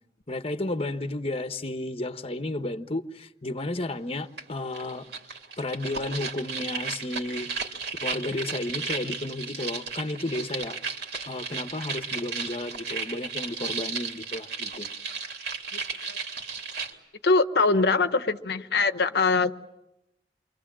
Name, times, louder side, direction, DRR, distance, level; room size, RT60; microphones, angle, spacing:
voice 1, 0.3-5.0 5.6-7.6 8.0-10.8 11.3-14.9, left 2 dB, 35° left, 1.1 m, -32 dB
sound 1, 4.4-4.5 4.7-16.9, right 5 dB, 65° right, 3.2 m, -34 dB
voice 2, 17.2-19.5, left 3 dB, 65° left, 1.0 m, -23 dB
29.5 x 24.0 x 7.5 m
head